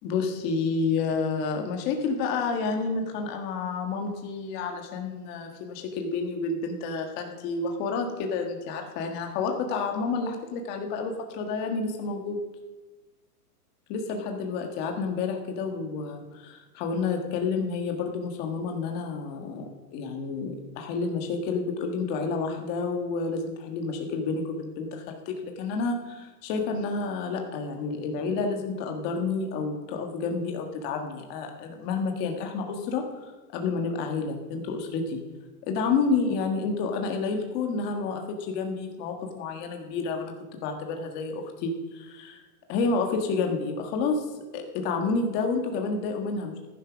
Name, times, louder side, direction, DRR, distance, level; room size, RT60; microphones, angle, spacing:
voice 1, 0.0-12.4 13.9-19.6 19.9-35.2 35.6-40.3 40.6-42.4 42.7-44.2 44.5-46.7, left 4 dB, 20° left, 3 dB, 1.6 m, -30 dB
15.0 x 10.5 x 6.1 m, 1.2 s
hypercardioid pair, 170°, 46 cm